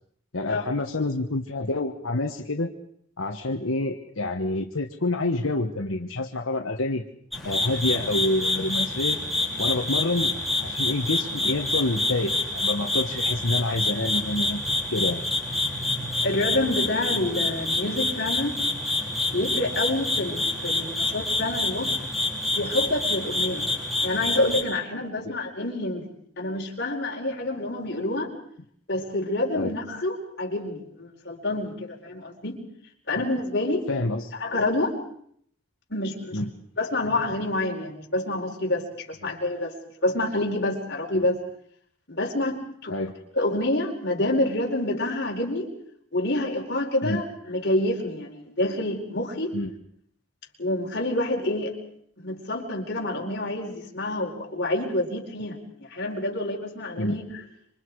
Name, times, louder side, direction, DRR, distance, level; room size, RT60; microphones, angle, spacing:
voice 1, 0.3-2.7 3.2-7.0 7.4-9.2 9.6-14.6 14.9-15.2 25.2-25.4 29.6-29.7 33.9-34.3 36.3-36.5 42.9-43.1 47.0-47.2 49.5-49.7 57.0-57.2, left 2 dB, 85° left, 3 dB, 1.4 m, -27 dB
sound 1, 7.3-24.6, left 2 dB, ahead, 4.4 m, -27 dB
voice 2, 16.2-18.5 19.3-21.9 22.5-23.6 24.0-26.0 26.4-28.3 28.9-32.6 33.1-33.9 34.4-35.0 35.9-36.4 36.8-39.7 40.0-41.4 42.1-42.9 43.4-45.7 46.1-49.6 50.6-51.7 52.2-55.6 55.9-57.2, left 1 dB, 50° left, 0 dB, 4.6 m, -27 dB
27.0 x 25.5 x 4.9 m, 0.65 s
head